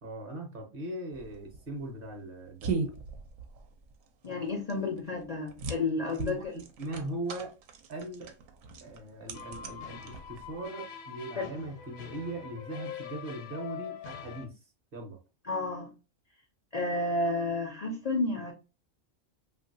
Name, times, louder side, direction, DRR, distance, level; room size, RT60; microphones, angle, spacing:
voice 1, 0.0-2.8 6.2-7.6 7.9-8.3 8.8-14.6 14.9-15.2, right 1 dB, 50° right, 0.8 m, -39 dB
sound 1, 1.1-10.6, right 4 dB, 75° right, 0.9 m, -39 dB
voice 2, 4.2-6.6 11.4-11.5 15.5-15.9 16.7-18.5, left 2 dB, 65° left, 0.4 m, -31 dB
sound 2, 9.3-14.5, left 8 dB, 80° left, 1.0 m, -44 dB
2.9 x 2.5 x 2.6 m
omnidirectional pair, 1.4 m